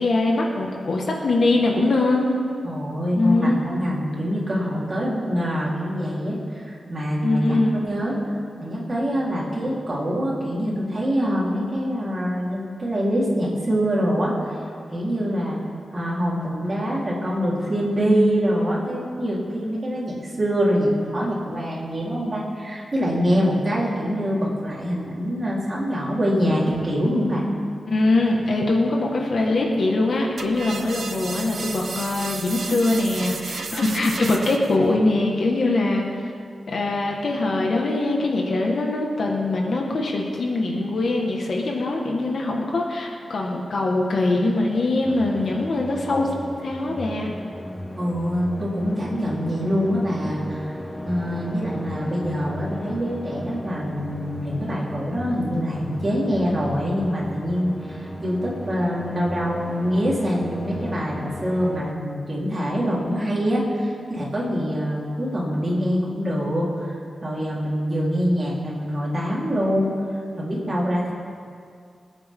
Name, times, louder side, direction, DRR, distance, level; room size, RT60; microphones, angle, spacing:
voice 1, 0.0-2.4 3.2-3.6 7.2-7.8 27.9-36.3 36.7-46.3 46.6-47.3, left 2 dB, 65° left, 0 dB, 1.7 m, -22 dB
voice 2, 2.6-8.2 8.6-14.6 14.9-15.6 15.9-27.5 48.0-50.7 51.0-69.9 70.4-71.1, equal, 30° right, -6 dB, 3.9 m, -24 dB
sound 1, 30.4-34.8, right 4 dB, 60° right, 0.9 m, -33 dB
sound 2, 45.0-61.9, left 1 dB, 15° left, 0.8 m, -36 dB
25.5 x 9.2 x 3.8 m, 2.3 s
wide cardioid pair, 125°, 0 cm